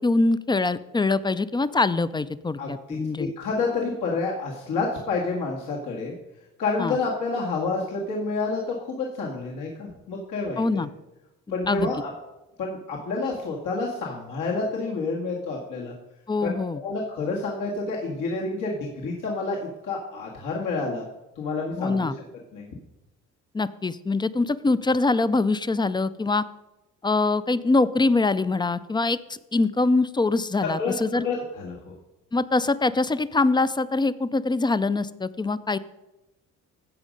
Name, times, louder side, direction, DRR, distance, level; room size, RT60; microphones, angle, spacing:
voice 1, 0.0-3.3 6.8-7.0 10.6-10.9 11.7-11.9 16.3-16.8 21.8-22.2 23.5-26.5 27.0-31.3 32.3-35.8, left 3 dB, 15° left, 16 dB, 0.4 m, -23 dB
voice 2, 2.6-6.1 6.6-10.8 11.5-12.1 12.6-15.9 16.4-19.6 19.8-21.1 21.4-22.1 22.5-22.7 30.6-30.9 31.2-31.9, left 3 dB, 75° left, -2 dB, 1.8 m, -29 dB
16.0 x 5.3 x 5.2 m, 0.99 s
cardioid pair, 90°, 32 cm